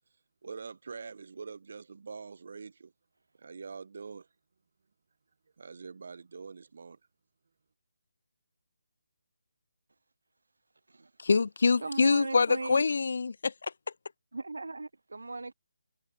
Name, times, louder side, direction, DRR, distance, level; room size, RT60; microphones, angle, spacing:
voice 1, 0.4-2.9 3.4-4.3 5.6-7.0, right 5 dB, 55° right, 4.0 m, -44 dB
voice 2, 11.2-13.5, left 4 dB, 60° left, 0.6 m, -25 dB
voice 3, 11.8-12.9 14.3-15.5, right 3 dB, 90° right, 6.3 m, -38 dB
hypercardioid pair, 165°, 0 cm